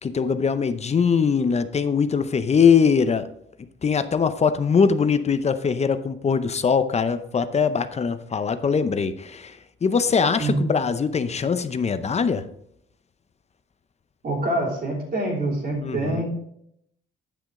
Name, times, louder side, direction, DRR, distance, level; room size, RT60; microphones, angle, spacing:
voice 1, 0.0-3.3 3.8-12.4 15.8-16.2, left 6 dB, 35° left, 12 dB, 0.7 m, -22 dB
voice 2, 14.2-16.2, right 2 dB, 50° right, -4 dB, 3.1 m, -25 dB
10.0 x 6.2 x 3.7 m, 0.74 s
cardioid pair, 90°, 20 cm